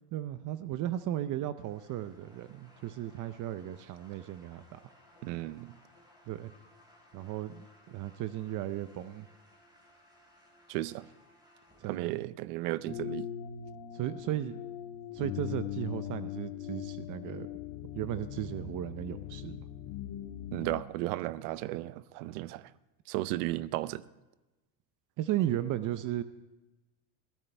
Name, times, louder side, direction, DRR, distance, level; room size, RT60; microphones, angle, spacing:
voice 1, 0.1-4.8 6.3-6.5 7.1-9.3 11.8-12.2 13.9-14.5 15.1-17.5 17.9-19.7 25.2-26.2, right 12 dB, 45° right, 0.6 m, -35 dB
sound 1, 1.6-12.0, left 1 dB, 10° right, 4.5 m, -61 dB
voice 2, 5.2-5.8 10.7-11.0 11.9-13.3 20.5-22.7 23.1-24.0, right 17 dB, 85° right, 0.7 m, -34 dB
sound 2, 12.9-20.8, left 11 dB, 80° left, 1.4 m, -40 dB
21.5 x 15.0 x 3.4 m
cardioid pair, 140°, 45 cm